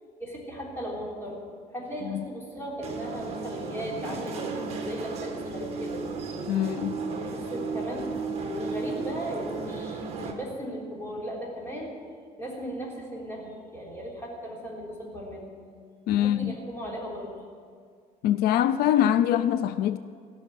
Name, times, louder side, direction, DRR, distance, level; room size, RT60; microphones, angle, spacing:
voice 1, 0.2-1.4 1.7-6.0 7.1-8.0 8.4-11.9 12.4-15.5 16.1-17.3, equal, 15° left, 3.7 m, -37 dB
sound 1, 2.8-10.3, right 4 dB, 40° right, 1.7 m, -34 dB
voice 2, 6.5-7.0 16.1-16.6 18.2-20.0, left 11 dB, 80° left, 0.5 m, -24 dB
17.0 x 6.3 x 10.0 m
cardioid pair, 160°, 16 cm